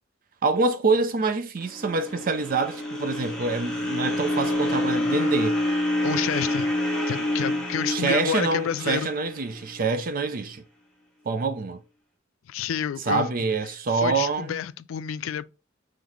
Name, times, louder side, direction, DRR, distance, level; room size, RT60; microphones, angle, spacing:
voice 1, 0.4-5.6 7.9-10.6 11.3-11.8 13.1-14.6, right 4 dB, 45° right, 0.5 m, -26 dB
sound 1, 1.6-9.8, left 1 dB, 5° left, 1.2 m, -27 dB
voice 2, 6.0-6.7 7.1-9.1 12.5-13.3 13.9-15.4, left 8 dB, 85° left, 0.3 m, -29 dB
4.0 x 3.2 x 3.0 m
head